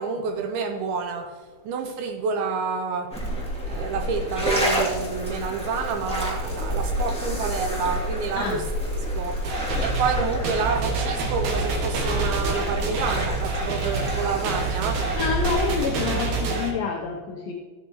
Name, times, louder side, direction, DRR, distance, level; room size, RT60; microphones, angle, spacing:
voice 1, 0.0-3.2 3.7-8.7 9.2-9.5 9.8-15.1, right 5 dB, 80° right, 2.2 m, -29 dB
sound 1, 3.1-15.9, equal, 5° left, 0.8 m, -29 dB
sound 2, 9.4-16.7, right 4 dB, 65° right, 3.3 m, -28 dB
voice 2, 15.2-17.5, left 5 dB, 75° left, 2.2 m, -27 dB
15.5 x 9.3 x 3.0 m
omnidirectional pair, 5.0 m